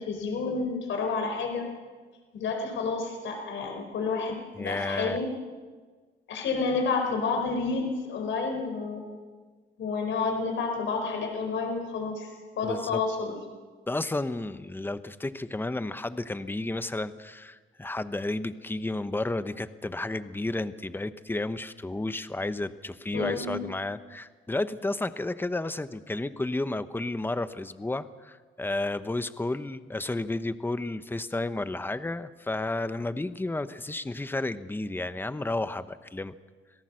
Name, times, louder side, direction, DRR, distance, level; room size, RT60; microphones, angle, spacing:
voice 1, 0.0-1.7 2.3-5.3 6.3-9.0 9.8-13.3 23.1-23.5, left 4 dB, 75° left, 3 dB, 4.4 m, -30 dB
voice 2, 4.6-5.2 12.6-13.0 13.9-36.3, left 2 dB, 10° left, 12 dB, 0.9 m, -32 dB
26.5 x 17.5 x 6.4 m, 1.4 s
cardioid pair, 90°, 20 cm